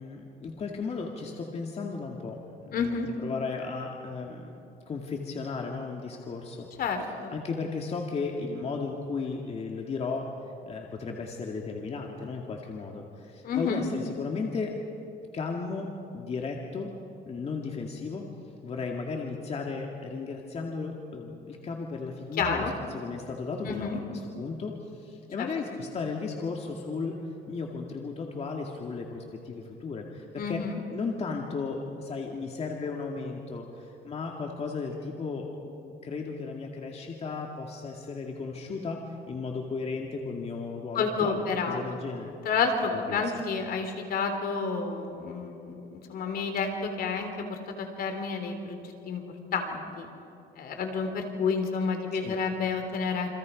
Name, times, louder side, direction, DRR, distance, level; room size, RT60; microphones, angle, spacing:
voice 1, 0.0-3.0 3.2-6.7 7.3-10.3 10.6-14.7 15.3-16.9 17.3-18.3 18.6-22.7 22.9-24.0 24.4-27.2 27.5-30.6 30.9-39.0 39.3-42.3 43.1-43.3 52.1-52.4, left 4 dB, 40° left, 1 dB, 2.3 m, -35 dB
voice 2, 2.7-3.1 6.8-7.4 13.4-13.9 22.4-22.7 23.7-24.0 25.4-25.5 30.3-30.8 40.9-41.8 42.4-49.2 49.5-50.1 50.6-53.3, left 5 dB, 60° left, 5 dB, 3.5 m, -30 dB
28.5 x 26.0 x 5.3 m, 2.8 s
cardioid pair, 110°, 17 cm